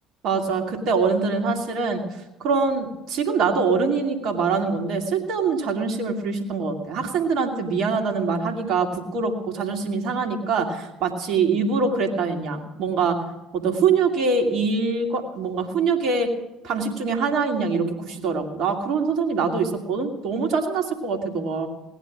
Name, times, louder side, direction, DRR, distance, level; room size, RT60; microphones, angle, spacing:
voice 1, 0.2-2.0 2.4-13.2 13.5-16.3 16.6-21.7, right 4 dB, 55° right, 3 dB, 2.4 m, -24 dB
18.0 x 10.5 x 6.1 m, 0.95 s
figure-of-eight pair, 55°, 0 cm